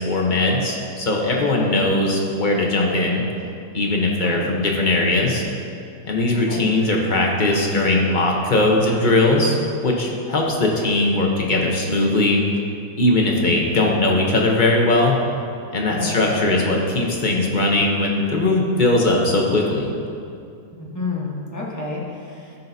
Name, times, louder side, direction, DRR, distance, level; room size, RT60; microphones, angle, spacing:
voice 1, 0.0-3.2 3.7-5.4 6.1-9.6 9.8-12.4 12.9-15.1 15.7-19.8, left 2 dB, 45° left, -1 dB, 0.6 m, -19 dB
voice 2, 4.1-4.5 6.5-6.7 15.9-16.3 20.8-22.6, left 3 dB, 10° left, -4 dB, 1.0 m, -30 dB
13.0 x 5.6 x 2.7 m, 2.5 s
omnidirectional pair, 1.8 m